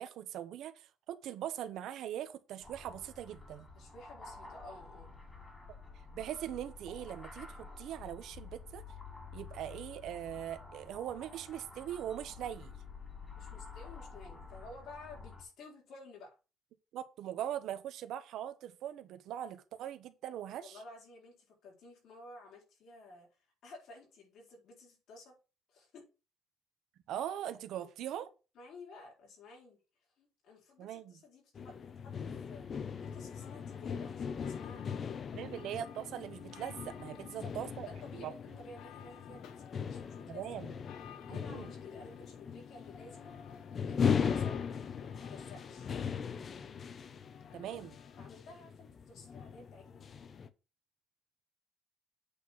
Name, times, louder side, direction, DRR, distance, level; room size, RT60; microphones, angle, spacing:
voice 1, 0.0-3.7 5.7-5.8 6.1-8.8 9.3-12.7 16.9-20.8 27.1-28.3 30.8-31.2 35.3-37.9 38.1-38.3 40.3-40.8 41.3-41.7 47.5-48.0, right 11 dB, 70° right, 1.0 m, -41 dB
sound 1, 2.6-15.4, left 4 dB, 20° left, 2.5 m, -50 dB
voice 2, 3.7-5.1 13.4-16.3 20.6-23.3 23.6-25.4 25.7-26.1 27.8-27.9 28.5-29.8 30.2-32.9 33.1-34.8 35.1-35.2 37.2-37.5 37.8-39.5 39.9-40.5 41.3-43.3 43.8-44.6 45.0-45.9 48.2-50.0, left 2 dB, 65° left, 4.7 m, -53 dB
sound 2, 31.6-50.5, left 6 dB, 35° left, 0.7 m, -39 dB
sound 3, 33.0-48.3, left 9 dB, 85° left, 1.0 m, -55 dB
8.3 x 4.2 x 6.0 m
cardioid pair, 150°, 0 cm